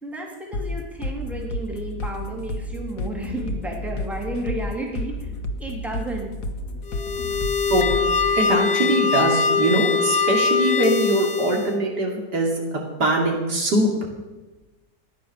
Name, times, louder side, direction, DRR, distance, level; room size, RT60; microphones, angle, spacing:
voice 1, 0.0-5.3 5.6-6.3 6.9-7.2, right 1 dB, ahead, 0 dB, 2.6 m, -32 dB
sound 1, 0.5-8.4, left 1 dB, 70° left, 1.7 m, -31 dB
sound 2, 6.9-11.8, left 5 dB, 50° left, 0.7 m, -22 dB
voice 2, 8.3-13.9, right 1 dB, 70° right, 0 dB, 3.2 m, -22 dB
15.0 x 10.0 x 6.7 m, 1.1 s
omnidirectional pair, 1.8 m